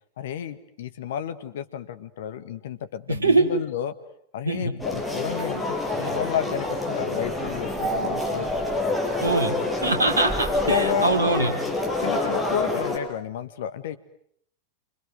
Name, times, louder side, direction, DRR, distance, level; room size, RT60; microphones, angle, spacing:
voice 1, 0.2-3.9 4.3-8.5 10.6-11.1 12.0-14.0, left 9 dB, 60° left, 12 dB, 1.8 m, -31 dB
voice 2, 3.1-3.4 4.4-4.7 9.2-9.6 9.8-11.5, right 2 dB, 75° right, 5 dB, 3.8 m, -22 dB
sound 1, 4.8-13.0, left 2 dB, 5° left, 7.7 m, -27 dB
28.5 x 25.5 x 8.1 m, 0.68 s
figure-of-eight pair, 90°, 0 cm